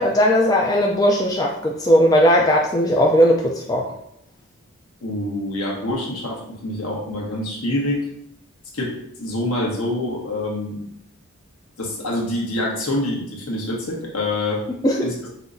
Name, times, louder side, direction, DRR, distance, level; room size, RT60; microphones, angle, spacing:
voice 1, 0.0-3.9 14.8-15.1, equal, 15° left, -2 dB, 0.3 m, -17 dB
voice 2, 5.0-8.1 8.7-10.9 11.8-14.6 15.0-15.1, left 1 dB, 80° left, -2 dB, 1.2 m, -26 dB
5.5 x 2.9 x 2.6 m, 0.72 s
head